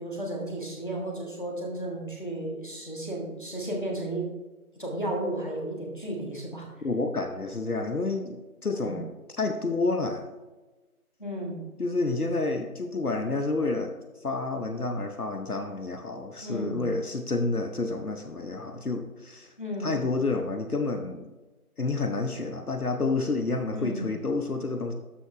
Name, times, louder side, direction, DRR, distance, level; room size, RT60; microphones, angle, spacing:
voice 1, 0.0-4.3 4.7-6.7 8.8-9.0 11.2-11.6 16.4-16.8 19.6-20.0 23.7-24.1, right 1 dB, 35° left, -1 dB, 1.6 m, -33 dB
voice 2, 6.8-10.3 11.8-13.9 14.2-19.5 19.8-21.3 21.8-24.9, left 3 dB, 75° left, 6 dB, 0.9 m, -29 dB
12.5 x 5.0 x 3.3 m, 1.2 s
figure-of-eight pair, 175°, 45 cm